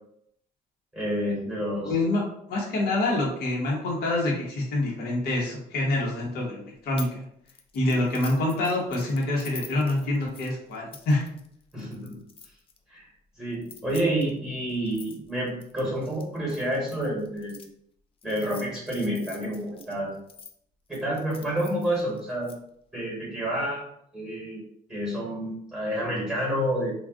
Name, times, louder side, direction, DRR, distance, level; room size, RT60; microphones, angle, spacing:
voice 1, 0.9-2.0 11.7-12.2 12.9-13.1 13.4-17.6 18.2-20.1 20.9-22.5 22.9-23.8 24.1-24.6 24.9-26.9, right 1 dB, 5° right, -5 dB, 1.3 m, -29 dB
voice 2, 1.8-2.2 2.5-7.2 7.7-11.3, left 2 dB, 65° left, -2 dB, 1.0 m, -26 dB
sound 1, 7.0-7.2 7.5-12.8 13.5-17.7 18.2-20.5 20.9-22.6, left 6 dB, 35° left, 0.4 m, -47 dB
2.4 x 2.3 x 3.5 m, 0.71 s
cardioid pair, 110°, 17 cm